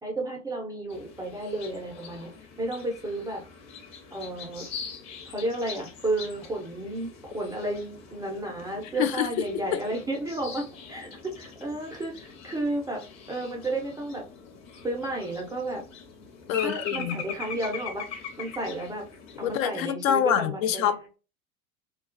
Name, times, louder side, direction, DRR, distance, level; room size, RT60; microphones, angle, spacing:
voice 1, 0.0-2.3 2.6-3.4 4.1-4.7 5.3-13.0 13.3-14.2 14.8-15.8 16.6-18.1 18.4-19.0 19.4-21.0, right 2 dB, 10° right, 0.3 m, -32 dB
sound 1, 0.9-19.6, left 6 dB, 40° left, 0.7 m, -42 dB
voice 2, 8.8-9.3 9.7-9.8 16.5-17.2 19.4-21.2, left 9 dB, 70° left, 0.5 m, -26 dB
2.3 x 2.2 x 2.4 m
hypercardioid pair, 90°, 42 cm